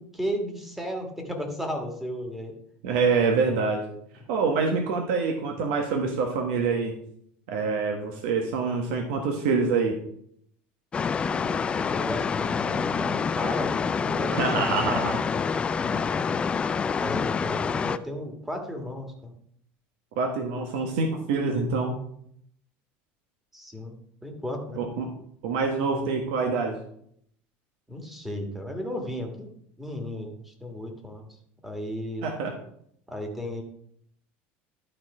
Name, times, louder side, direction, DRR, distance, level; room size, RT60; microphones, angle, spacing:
voice 1, 0.1-2.5 11.2-16.1 17.0-19.3 23.5-24.8 27.9-29.5 29.8-31.3 31.6-32.2 33.1-33.6, equal, 5° right, 3 dB, 1.6 m, -35 dB
voice 2, 2.8-3.9 4.3-6.9 7.5-10.0 14.3-15.2 20.2-21.9 24.8-25.1 25.4-26.8 32.2-32.5, right 4 dB, 80° right, 2 dB, 1.3 m, -26 dB
sound 1, 10.9-18.0, left 6 dB, 20° left, 0.3 m, -27 dB
11.5 x 4.5 x 4.8 m, 0.69 s
cardioid pair, 145°, 6 cm